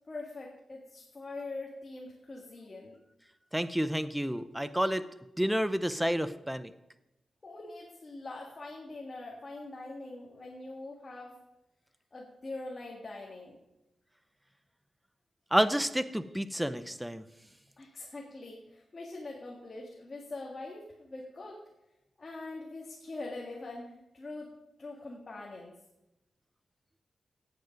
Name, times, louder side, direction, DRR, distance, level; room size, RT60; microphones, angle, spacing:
voice 1, 0.1-3.0 7.4-11.4 12.1-13.6 17.8-21.6 22.2-24.5 24.8-25.7, left 2 dB, 30° left, -2 dB, 1.8 m, -43 dB
voice 2, 3.5-5.1 5.4-6.7 15.5-17.2, equal, 5° right, 13 dB, 0.6 m, -29 dB
17.0 x 8.1 x 5.2 m, 0.93 s
wide cardioid pair, 170°, 0 cm